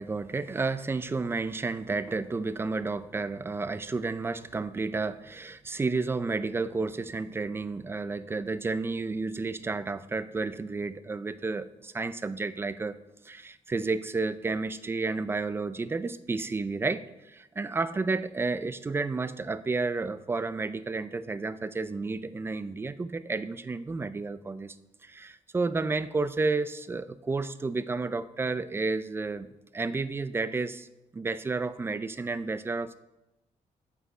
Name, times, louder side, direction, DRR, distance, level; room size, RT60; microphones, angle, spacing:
voice 1, 0.0-24.8 25.0-30.9 31.1-33.0, right 3 dB, 15° right, 14 dB, 0.4 m, -31 dB
8.2 x 7.8 x 4.9 m, 0.95 s
cardioid pair, 140°, 13 cm